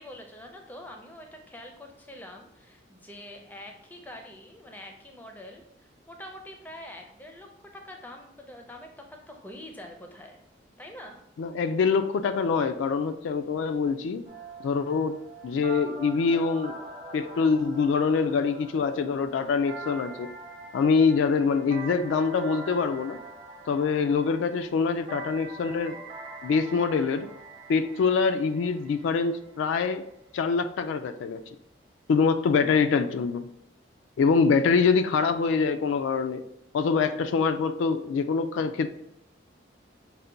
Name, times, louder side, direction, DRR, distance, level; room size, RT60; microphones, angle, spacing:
voice 1, 0.0-10.4 10.8-11.2, left 1 dB, 10° left, 3 dB, 0.4 m, -45 dB
voice 2, 11.4-14.2 14.6-15.2 15.4-16.8 17.1-20.3 20.7-23.2 23.7-26.0 26.4-27.3 27.7-30.1 30.3-31.4 32.1-33.5 34.2-36.4 36.7-38.9, left 5 dB, 80° left, 9 dB, 0.3 m, -24 dB
sound 1, 14.3-30.0, right 3 dB, 30° right, 0.8 m, -44 dB
5.5 x 2.2 x 3.8 m, 0.75 s
head